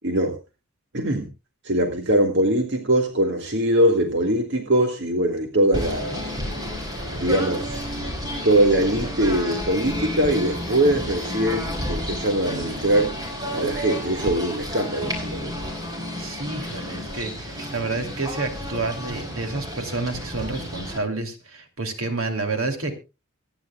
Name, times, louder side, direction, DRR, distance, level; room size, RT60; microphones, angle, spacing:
voice 1, 0.0-0.4 0.9-1.3 1.6-6.3 7.1-7.8 8.4-13.1 13.5-15.6, right 1 dB, 60° right, 4 dB, 2.0 m, -22 dB
Singing / Bird, 5.7-21.0, equal, 20° right, 4.5 m, -31 dB
voice 2, 16.2-23.0, right 3 dB, 80° right, 5 dB, 2.9 m, -29 dB
25.0 x 10.0 x 2.3 m, 0.28 s
head